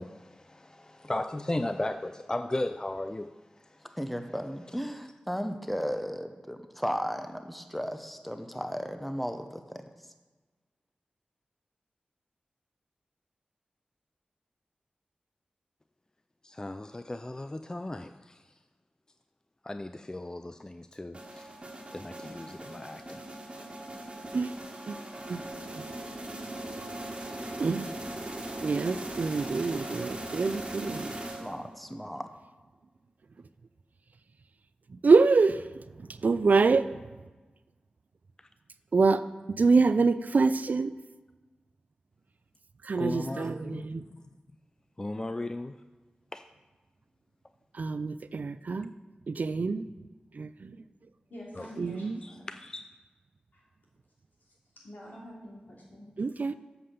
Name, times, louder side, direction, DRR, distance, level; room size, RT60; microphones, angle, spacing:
voice 1, 0.0-3.3 3.6-3.8 16.4-18.4 19.6-21.5 21.9-23.2 42.9-43.8 45.0-45.8 46.3-46.4 51.6-51.7 52.2-52.8, left 1 dB, 25° left, 0.4 m, -36 dB
voice 2, 4.0-9.6 31.4-32.3, equal, 5° left, 0.8 m, -35 dB
sound 1, 21.1-31.8, right 1 dB, 40° right, 1.6 m, -40 dB
voice 3, 27.6-27.9 28.6-31.1 34.9-37.0 38.9-39.2 39.5-40.9 42.8-44.0 47.7-48.9 49.3-49.9 50.3-50.8 51.8-52.2 56.2-56.6, right 4 dB, 60° right, 0.4 m, -26 dB
voice 4, 51.3-52.5 53.5-53.6 54.8-56.1, left 1 dB, 75° left, 2.8 m, -46 dB
7.6 x 5.6 x 6.7 m
cardioid pair, 50°, 3 cm